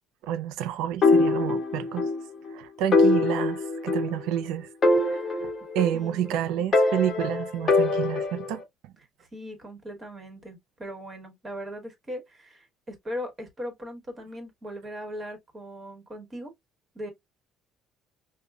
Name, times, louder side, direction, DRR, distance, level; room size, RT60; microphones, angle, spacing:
voice 1, 0.2-2.1 2.5-4.7 5.0-8.6, right 11 dB, 85° right, 0.4 m, -29 dB
sound 1, 1.0-2.2 2.5-2.6 2.9-4.4 4.8-6.3 6.7-8.6, left 3 dB, 35° left, 0.9 m, -23 dB
voice 2, 5.9-6.7 9.2-16.5 16.9-17.1, equal, 20° right, 1.3 m, -39 dB
5.2 x 2.1 x 2.3 m
cardioid pair, 135°, 0 cm